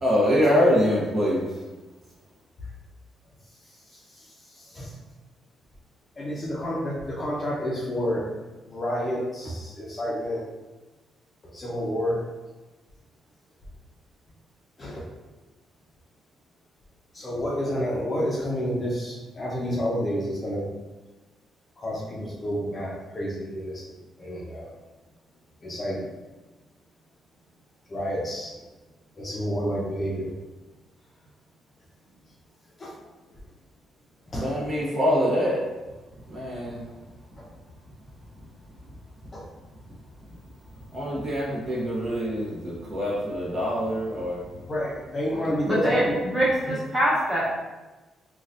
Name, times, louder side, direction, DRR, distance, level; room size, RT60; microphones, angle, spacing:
voice 1, 0.0-1.4 34.3-35.6 36.3-36.8 40.9-44.4, equal, 35° right, -6 dB, 0.9 m, -24 dB
voice 2, 3.9-5.0 6.2-8.3 8.7-10.4 11.5-12.2 14.8-15.1 17.1-20.7 21.8-23.9 24.2-24.7 25.6-26.0 27.9-28.5 29.2-30.3 32.8-32.9 34.3-34.6 37.4-37.5 39.3-39.4 44.7-46.2, equal, 25° left, -5 dB, 0.6 m, -29 dB
voice 3, 45.6-47.5, right 1 dB, 15° right, -9 dB, 1.2 m, -24 dB
3.9 x 2.2 x 2.5 m, 1.2 s
cardioid pair, 140°, 0 cm